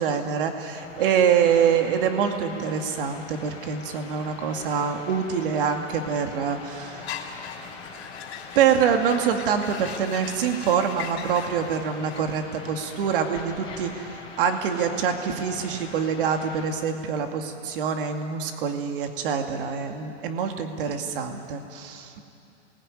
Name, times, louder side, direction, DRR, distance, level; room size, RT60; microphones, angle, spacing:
voice 1, 0.0-7.1 8.6-22.1, right 7 dB, 50° right, 4 dB, 2.3 m, -25 dB
sound 1, 0.7-16.7, left 4 dB, 15° left, 3.9 m, -42 dB
sound 2, 7.0-12.2, left 8 dB, 60° left, 3.4 m, -40 dB
28.0 x 21.0 x 9.9 m, 2.8 s
supercardioid pair, 175°, 35 cm